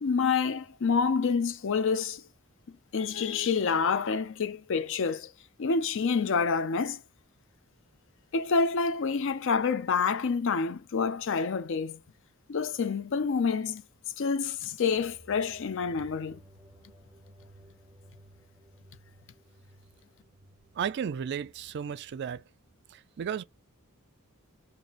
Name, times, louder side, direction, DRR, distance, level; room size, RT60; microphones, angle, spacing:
voice 1, 0.0-2.2 2.9-5.3 5.6-7.0 8.3-12.0 12.5-13.8 14.2-16.4, left 5 dB, 60° left, 0.5 m, -28 dB
sound 1, 14.9-22.2, right 1 dB, 5° right, 2.2 m, -57 dB
voice 2, 20.8-22.4 22.9-23.4, right 7 dB, 50° right, 0.3 m, -34 dB
4.1 x 2.6 x 3.0 m
head